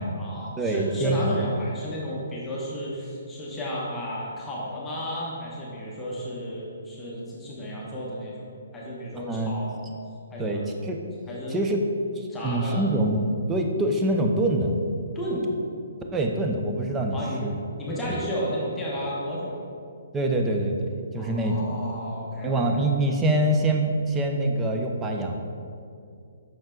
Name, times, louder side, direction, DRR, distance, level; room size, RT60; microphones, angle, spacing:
voice 1, 0.0-8.5 8.7-9.8 10.3-10.7 11.3-11.6 12.3-12.8 15.1-15.5 17.1-17.5 17.8-19.6 21.2-22.8, equal, 10° left, -6 dB, 1.0 m, -33 dB
voice 2, 0.6-1.4 9.2-9.5 10.4-11.0 11.5-11.8 12.2-13.2 13.5-14.8 16.1-17.6 18.1-18.2 20.1-21.7 22.4-25.3, right 1 dB, 10° right, 2 dB, 0.5 m, -25 dB
5.8 x 5.3 x 3.8 m, 2.4 s
hypercardioid pair, 155°, 0 cm